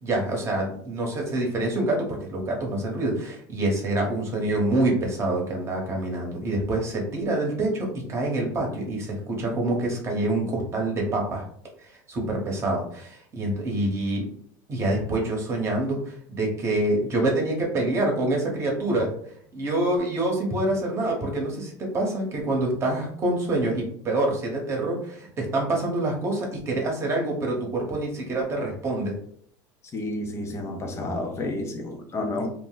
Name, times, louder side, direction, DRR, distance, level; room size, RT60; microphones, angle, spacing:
voice 1, 0.0-11.4 11.8-14.2 14.7-19.1 19.5-29.2, right 2 dB, 30° right, 0 dB, 1.0 m, -26 dB
voice 2, 29.9-32.5, left 2 dB, 30° left, 4 dB, 0.6 m, -30 dB
2.4 x 2.1 x 3.8 m, 0.63 s
supercardioid pair, 125°, 10 cm